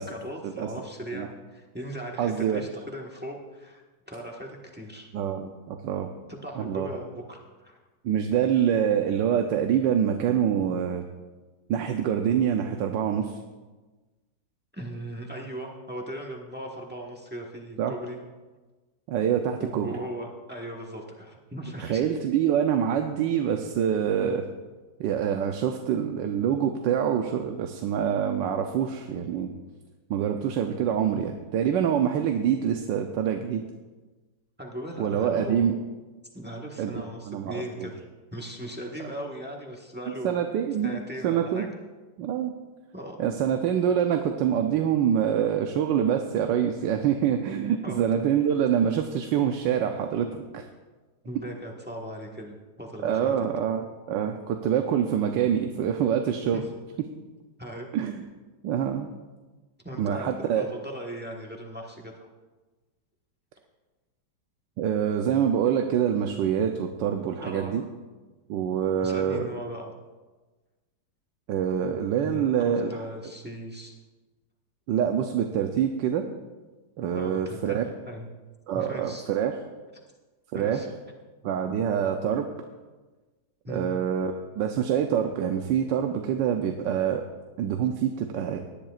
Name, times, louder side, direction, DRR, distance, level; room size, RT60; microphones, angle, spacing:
voice 1, 0.1-5.1 6.3-7.8 14.7-18.2 19.6-22.0 34.6-35.7 36.3-38.0 38.3-40.4 40.8-41.7 42.9-43.2 47.8-48.4 51.2-53.5 56.5-56.6 57.6-57.9 59.8-60.3 60.5-62.3 67.4-67.9 69.0-69.9 72.2-73.9 77.1-77.8 78.0-78.3 78.7-79.3 80.5-80.9 83.6-83.9, equal, 5° right, 0 dB, 1.0 m, -38 dB
voice 2, 2.2-2.6 5.1-6.1 6.6-6.9 8.0-11.0 11.7-13.4 17.8-17.9 19.1-19.9 21.8-24.4 25.0-29.5 30.1-33.6 35.0-35.8 36.8-36.9 37.2-37.9 40.2-41.7 42.2-42.5 43.2-50.7 53.0-56.6 57.9-58.2 58.6-59.1 60.0-60.6 64.8-67.8 68.5-69.5 71.5-73.0 74.9-76.2 77.0-77.9 78.7-79.6 80.5-80.8 81.4-82.5 83.7-87.3 87.6-88.6, right 8 dB, 85° right, 4 dB, 1.4 m, -25 dB
18.5 x 10.5 x 2.4 m, 1.3 s
omnidirectional pair, 1.9 m